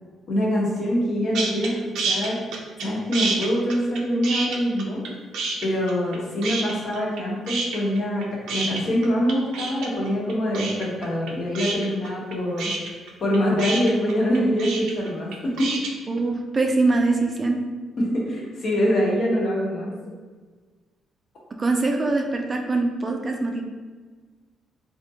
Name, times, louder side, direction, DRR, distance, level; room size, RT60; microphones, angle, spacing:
voice 1, 0.3-1.7 2.0-2.4 2.8-5.0 5.6-12.7 13.2-15.8 18.0-19.9, equal, 55° left, -4 dB, 1.0 m, -24 dB
sound 1, 1.3-1.7 1.9-2.9 3.1-5.1 5.3-6.2 6.4-7.2 7.5-15.9, right 3 dB, 85° right, 0.5 m, -28 dB
voice 2, 16.1-17.6 21.6-23.6, right 3 dB, 30° right, 2 dB, 0.4 m, -23 dB
3.6 x 2.5 x 2.7 m, 1.4 s
cardioid pair, 90°, 0 cm